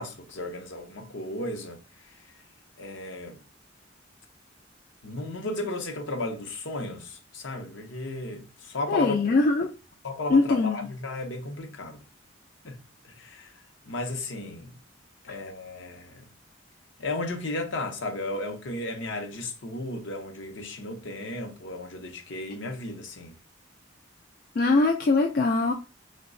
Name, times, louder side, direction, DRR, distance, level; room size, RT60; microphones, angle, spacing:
voice 1, 0.0-2.3 2.8-3.4 5.0-9.1 10.0-12.0 12.6-12.8 13.0-13.5 13.9-14.7 15.2-16.3 17.0-23.3, left 2 dB, 70° left, 0.7 m, -34 dB
voice 2, 8.9-9.7 10.3-10.8 24.6-25.7, left 3 dB, 45° left, 0.3 m, -22 dB
3.0 x 2.2 x 3.6 m
head